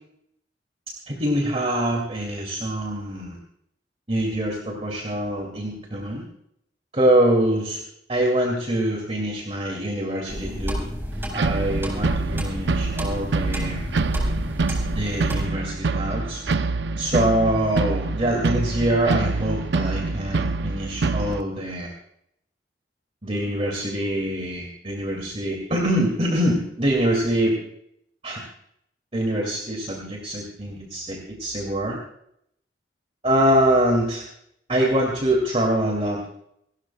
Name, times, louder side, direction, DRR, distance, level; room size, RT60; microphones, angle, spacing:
voice 1, 1.1-3.4 4.1-6.3 6.9-7.8 8.1-10.8 11.3-13.9 14.9-16.4 17.0-21.9 23.2-27.6 28.2-28.4 29.1-32.0 33.2-34.2 34.7-36.2, right 1 dB, 35° right, 0 dB, 2.3 m, -24 dB
sound 1, 10.3-15.5, equal, 15° right, 4.5 m, -31 dB
sound 2, 11.3-21.4, right 3 dB, 70° right, 0.6 m, -26 dB
28.0 x 13.0 x 2.2 m, 0.74 s
head